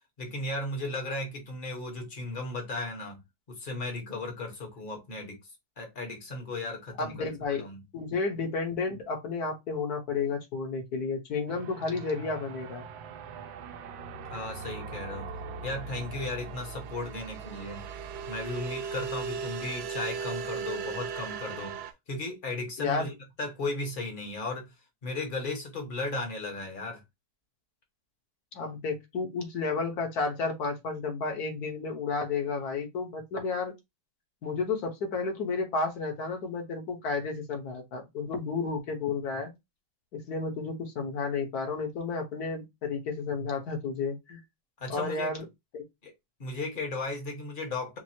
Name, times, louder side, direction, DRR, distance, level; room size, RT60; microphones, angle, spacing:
voice 1, 0.2-3.2 3.5-5.4 5.8-7.3 7.6-7.8 14.3-17.9 18.3-23.1 23.4-24.7 25.0-27.0 44.8-45.3 46.0-46.1 46.4-48.0, left 2 dB, 35° left, 1.0 m, -35 dB
voice 2, 7.0-7.7 7.9-12.9 22.8-23.1 28.5-33.7 34.4-39.5 40.1-44.4 44.9-45.4 45.7-45.9, left 4 dB, 55° left, 1.4 m, -32 dB
sound 1, 11.5-21.9, right 6 dB, 80° right, 1.4 m, -38 dB
4.5 x 2.0 x 4.2 m
omnidirectional pair, 2.2 m